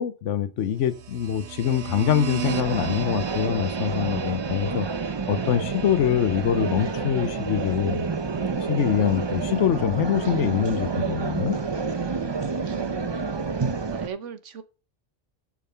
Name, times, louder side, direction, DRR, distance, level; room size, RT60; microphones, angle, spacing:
voice 1, 0.0-4.9 5.3-8.1 8.7-11.6, left 9 dB, 85° left, 1.1 m, -24 dB
sound 1, 0.8-9.6, right 9 dB, 70° right, 1.0 m, -38 dB
sound 2, 2.4-14.1, right 4 dB, 30° right, 0.5 m, -29 dB
voice 2, 12.6-13.2 13.9-14.6, right 7 dB, 90° right, 1.3 m, -38 dB
7.0 x 6.3 x 5.6 m
omnidirectional pair, 1.2 m